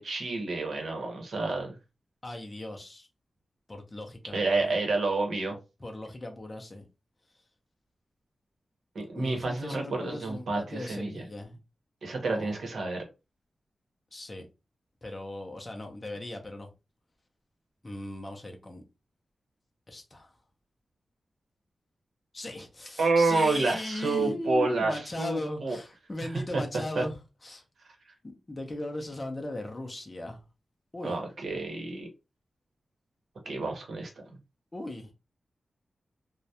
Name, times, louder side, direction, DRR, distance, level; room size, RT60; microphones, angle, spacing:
voice 1, 0.0-1.7 4.3-5.6 8.9-11.2 12.0-13.0 23.0-25.8 26.5-26.6 26.9-27.0 31.0-32.1 33.5-34.1, right 3 dB, 75° right, 0.8 m, -29 dB
voice 2, 2.2-3.1 3.7-4.8 5.8-6.8 9.2-11.6 12.2-12.5 14.1-14.5 15.0-16.7 17.8-18.8 19.9-20.3 22.3-27.6 28.2-30.4 30.9-31.2 34.7-35.1, left 1 dB, 20° left, 0.5 m, -38 dB
2.3 x 2.0 x 2.7 m
wide cardioid pair, 170°, 0 cm